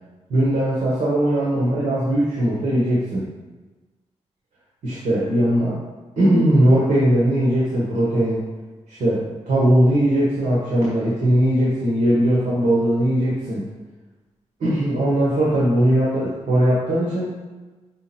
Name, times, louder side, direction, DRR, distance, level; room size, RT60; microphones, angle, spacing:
voice 1, 0.3-3.3 4.8-5.8 6.2-8.4 8.9-13.6 14.6-17.4, right 1 dB, 85° right, -6 dB, 1.5 m, -19 dB
6.1 x 4.2 x 4.4 m, 1.2 s
wide cardioid pair, 115°, 12 cm